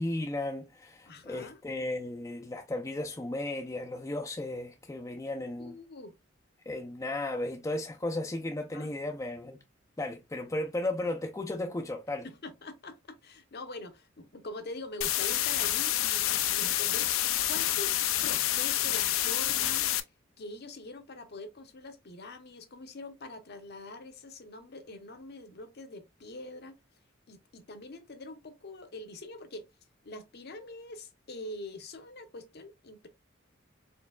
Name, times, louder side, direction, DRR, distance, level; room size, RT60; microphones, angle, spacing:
voice 1, 0.0-5.7 6.7-9.6 10.0-12.3, left 2 dB, 15° left, 0.4 m, -35 dB
voice 2, 1.1-1.6 5.6-6.1 8.7-8.9 12.2-17.1 17.5-18.0 18.2-19.9 20.4-26.8 27.3-29.7 30.0-33.1, left 2 dB, 50° left, 0.8 m, -44 dB
sound 1, 15.0-20.0, left 13 dB, 80° left, 0.5 m, -28 dB
4.4 x 3.4 x 2.2 m
head